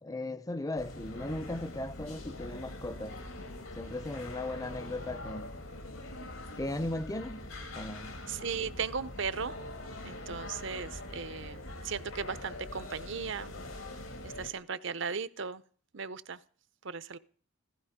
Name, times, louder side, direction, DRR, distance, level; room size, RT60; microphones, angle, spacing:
voice 1, 0.0-3.2 3.8-5.6 6.6-7.5 7.7-8.2, left 1 dB, 20° left, 0.7 m, -37 dB
sound 1, 0.8-14.5, left 1 dB, 80° left, 2.6 m, -43 dB
voice 2, 8.3-9.5 10.0-13.5 14.2-15.6 15.9-16.4 16.8-17.2, right 5 dB, 65° right, 0.9 m, -37 dB
16.0 x 14.5 x 5.2 m
head